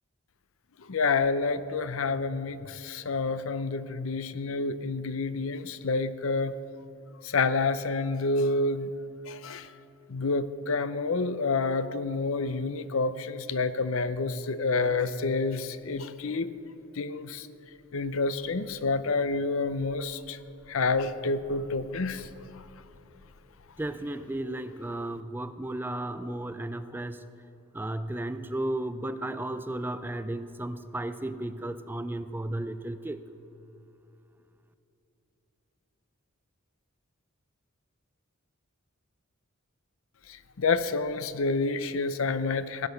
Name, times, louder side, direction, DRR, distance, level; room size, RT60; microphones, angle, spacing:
voice 1, 0.8-6.5 7.2-8.9 9.3-9.7 10.1-16.5 17.0-17.5 17.9-20.4 20.7-22.3 22.6-22.7 40.3-42.9, left 3 dB, 65° left, 13 dB, 0.6 m, -28 dB
voice 2, 23.8-27.2 27.7-33.2, right 1 dB, 10° right, 11 dB, 0.4 m, -34 dB
17.0 x 9.1 x 6.6 m, 2.9 s
head